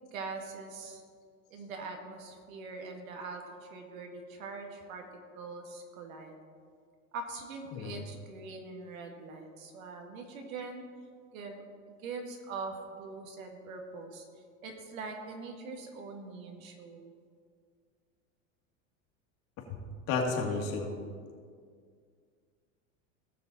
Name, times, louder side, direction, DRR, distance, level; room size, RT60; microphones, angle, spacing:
voice 1, 0.1-1.0 1.5-5.0 5.3-6.3 7.1-10.9 11.3-11.6 12.0-14.2 14.6-17.1, right 4 dB, 80° right, 3 dB, 2.0 m, -43 dB
voice 2, 7.7-8.1 19.7-19.8 20.1-20.9, left 4 dB, 55° left, 1 dB, 2.4 m, -32 dB
17.5 x 6.4 x 4.1 m, 2.1 s
hypercardioid pair, 100°, 40 cm